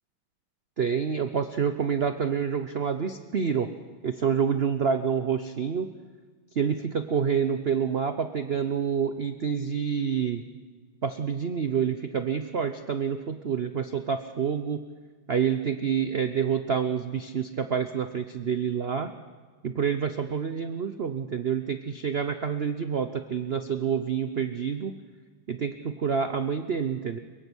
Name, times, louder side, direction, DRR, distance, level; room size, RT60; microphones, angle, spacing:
voice 1, 0.8-3.7 4.0-5.9 6.5-10.4 11.0-14.8 15.3-19.1 19.6-24.9 25.5-27.2, right 7 dB, 80° right, 9 dB, 0.5 m, -28 dB
22.5 x 22.5 x 6.2 m, 1.5 s
omnidirectional pair, 2.2 m